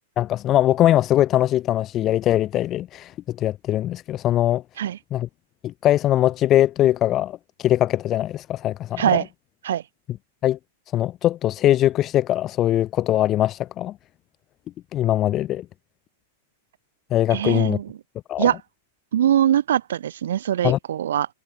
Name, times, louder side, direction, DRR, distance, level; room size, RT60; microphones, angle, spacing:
voice 1, 0.2-3.1 3.4-4.6 5.1-5.3 5.6-9.1 10.4-10.6 10.9-13.9 14.9-15.6 17.1-17.8 18.3-18.5 20.6-20.8, left 13 dB, 25° left, 1.0 m, -21 dB
voice 2, 17.3-17.9 18.4-18.6 19.1-21.3, right 10 dB, 90° right, 3.5 m, -22 dB
supercardioid pair, 165°, 0 cm